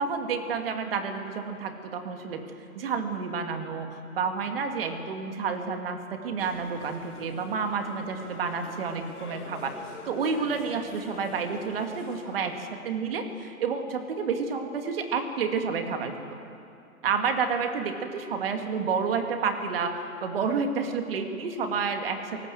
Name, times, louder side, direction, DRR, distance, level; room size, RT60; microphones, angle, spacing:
voice 1, 0.0-2.4 2.7-9.7 10.1-16.1 17.0-22.5, right 5 dB, 40° right, 5 dB, 2.6 m, -30 dB
sound 1, 6.4-12.8, left 4 dB, 85° left, 4.2 m, -46 dB
28.0 x 19.0 x 7.9 m, 2.6 s
hypercardioid pair, 165°, 43 cm